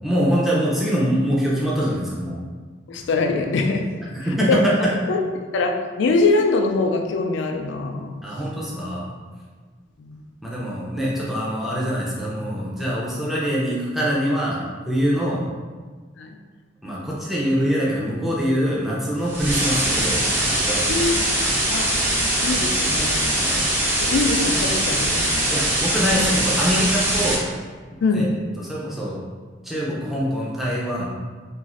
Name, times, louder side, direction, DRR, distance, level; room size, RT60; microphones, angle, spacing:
voice 1, 0.0-2.4 4.1-4.7 8.2-9.1 10.4-14.6 14.9-15.4 16.8-20.9 21.5-21.6 23.3-23.6 25.5-27.4 28.1-28.3 28.6-29.2 29.6-31.1, equal, ahead, -6 dB, 0.4 m, -24 dB
voice 2, 2.9-3.8 4.5-5.2 5.5-5.7 6.0-8.2 10.0-10.3 16.2-16.3 20.9-21.3 21.7-21.9 22.4-23.2 24.0-25.5 28.0-28.3, left 3 dB, 70° left, 4 dB, 0.3 m, -23 dB
sound 1, 19.3-27.3, right 1 dB, 70° right, 0.9 m, -22 dB
3.0 x 2.4 x 2.5 m, 1.4 s
head